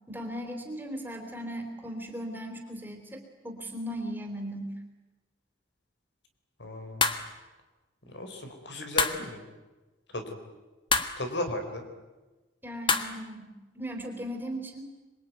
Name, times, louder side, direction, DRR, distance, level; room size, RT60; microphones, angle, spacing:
voice 1, 0.1-4.8 12.6-14.9, equal, 10° right, 3 dB, 3.8 m, -37 dB
voice 2, 6.6-7.1 8.1-9.4 10.1-10.4 11.2-11.8, left 1 dB, 75° left, 6 dB, 4.3 m, -35 dB
sound 1, 7.0-7.3 9.0-9.3 10.9-11.2 12.9-13.2, left 5 dB, 25° left, 1.4 m, -26 dB
26.0 x 22.5 x 9.5 m, 1.2 s
head